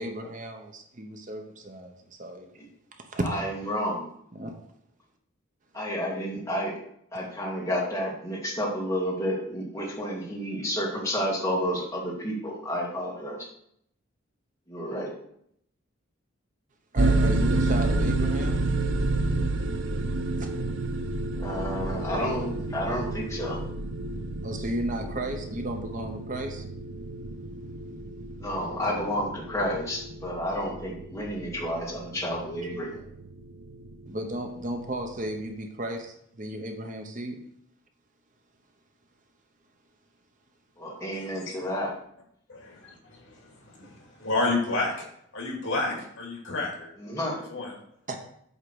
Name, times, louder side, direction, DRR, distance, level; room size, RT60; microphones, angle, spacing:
voice 1, 0.0-2.5 3.1-3.3 3.6-3.8 4.3-4.5 16.9-18.6 20.4-20.5 24.4-26.6 34.1-37.4 48.1-48.2, right 1 dB, 40° right, 4 dB, 0.8 m, -34 dB
voice 2, 3.3-4.0 5.7-6.7 7.1-13.4 14.7-15.1 21.4-23.6 28.4-33.0 40.8-41.9 47.0-47.4, equal, 15° left, -4 dB, 1.9 m, -30 dB
sound 1, 17.0-35.5, right 2 dB, 65° right, 0.7 m, -30 dB
voice 3, 41.1-41.5 42.5-42.6 43.1-44.9 45.3-46.9 47.5-47.7, left 2 dB, 70° left, -1 dB, 2.7 m, -30 dB
8.1 x 3.7 x 6.2 m, 0.70 s
head